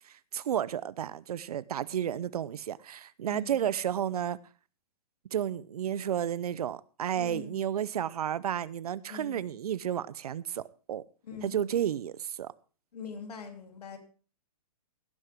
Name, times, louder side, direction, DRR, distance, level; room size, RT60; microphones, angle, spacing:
voice 1, 0.1-4.4 5.3-11.0 11.4-12.5, right 10 dB, 65° right, 0.7 m, -32 dB
voice 2, 3.3-3.6 7.2-7.6 9.1-9.4 11.2-11.8 12.9-14.0, left 4 dB, 70° left, 3.0 m, -43 dB
17.0 x 9.8 x 3.6 m
hypercardioid pair, 165°, 20 cm